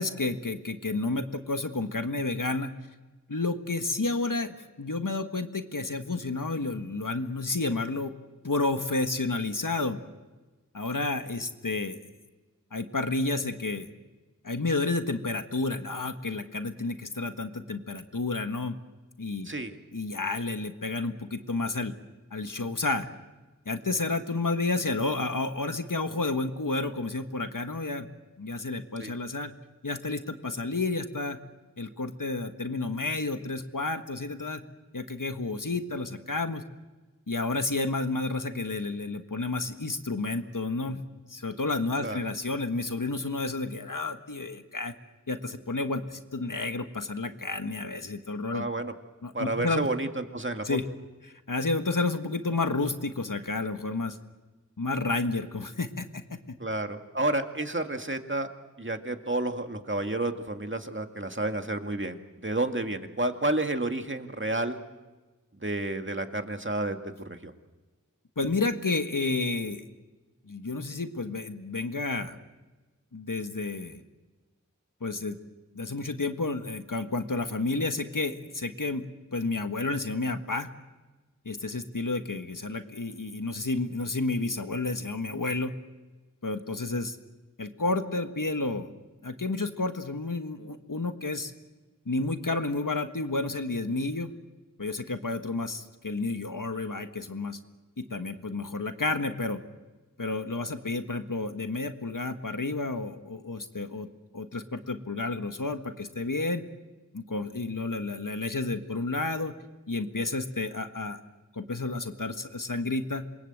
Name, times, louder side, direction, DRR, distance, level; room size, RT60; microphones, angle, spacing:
voice 1, 0.0-2.7 3.3-8.1 8.4-10.0 10.7-12.0 12.7-13.9 14.4-18.8 19.2-19.5 19.9-21.9 22.3-23.1 23.6-28.1 28.4-29.5 29.8-31.4 31.8-34.6 34.9-36.6 37.3-41.0 41.3-44.9 45.3-48.7 49.2-49.9 50.6-50.8 51.5-54.2 54.8-56.4 68.4-69.9 70.5-72.4 73.1-74.0 75.0-75.4 75.7-79.1 79.3-80.7 81.4-85.7 86.4-87.2 87.6-88.9 89.2-91.5 92.0-94.3 94.8-97.6 98.0-99.6 100.2-104.1 104.3-106.6 107.1-109.5 109.9-111.2 111.5-113.2, left 3 dB, 75° left, 7 dB, 1.6 m, -31 dB
voice 2, 19.5-19.8 29.0-29.2 42.0-42.2 48.5-48.9 49.3-50.8 56.6-58.5 58.8-64.8 65.6-67.0 67.3-67.5, right 2 dB, 35° right, 6 dB, 2.1 m, -30 dB
27.5 x 22.5 x 8.0 m, 1.2 s
wide cardioid pair, 40°, 32 cm